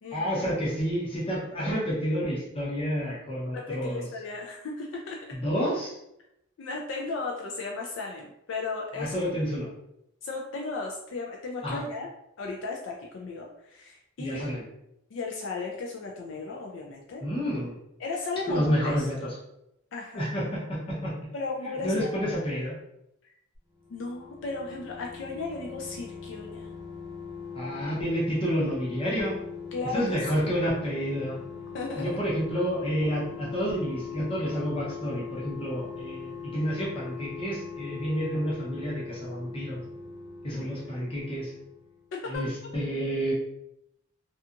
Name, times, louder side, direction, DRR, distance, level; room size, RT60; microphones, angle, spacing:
voice 1, 0.1-4.1 5.3-6.0 8.9-9.7 11.6-11.8 14.2-14.6 17.2-17.7 18.5-19.2 20.1-21.1 21.8-22.7 27.5-29.4 29.9-31.4 32.0-39.8 40.4-41.5 42.3-43.3, equal, 25° left, -6 dB, 0.8 m, -29 dB
voice 2, 3.5-5.4 6.6-9.3 10.2-12.1 12.4-14.5 15.1-17.2 18.0-19.1 19.9-20.3 21.3-22.2 23.9-26.7 29.7-30.5 31.7-32.0 40.5-40.7 42.1-42.5, left 3 dB, 65° left, -1 dB, 0.4 m, -35 dB
sound 1, 23.5-42.1 42.3-42.4, left 6 dB, 15° right, 0.6 m, -41 dB
2.7 x 2.3 x 2.4 m, 0.82 s
head